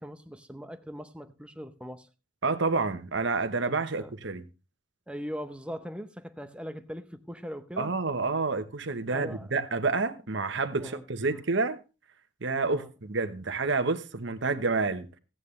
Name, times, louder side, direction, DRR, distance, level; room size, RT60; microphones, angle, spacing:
voice 1, 0.0-2.1 3.7-4.1 5.1-7.9 9.1-9.5 10.8-11.0 12.7-12.9, equal, 5° right, 0.7 m, -40 dB
voice 2, 2.4-4.4 7.8-11.8 12.4-15.1, right 3 dB, 65° right, 1.0 m, -29 dB
15.0 x 9.2 x 3.2 m
head